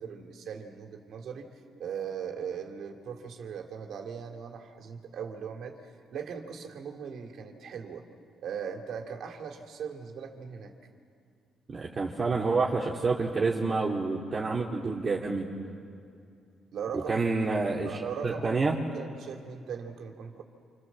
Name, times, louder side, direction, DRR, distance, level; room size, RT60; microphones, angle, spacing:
voice 1, 0.0-1.5 1.8-8.1 8.4-10.7 16.7-17.1 17.8-20.4, right 7 dB, 70° right, 3 dB, 2.9 m, -39 dB
voice 2, 11.7-15.5 17.1-18.8, right 3 dB, 35° right, -4 dB, 2.6 m, -28 dB
28.0 x 26.0 x 7.5 m, 2.4 s
cardioid pair, 90°, 0 cm